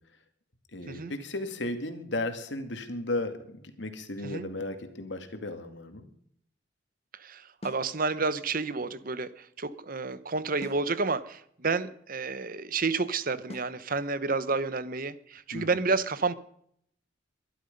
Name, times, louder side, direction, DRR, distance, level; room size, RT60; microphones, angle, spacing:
voice 1, 0.7-6.1 15.5-15.9, left 2 dB, 75° left, 2.3 m, -35 dB
voice 2, 7.1-16.3, right 4 dB, 50° right, 1.0 m, -30 dB
sound 1, 7.6-7.9 10.6-10.9 13.5-13.8, left 1 dB, 35° left, 0.8 m, -44 dB
22.5 x 12.0 x 5.4 m
head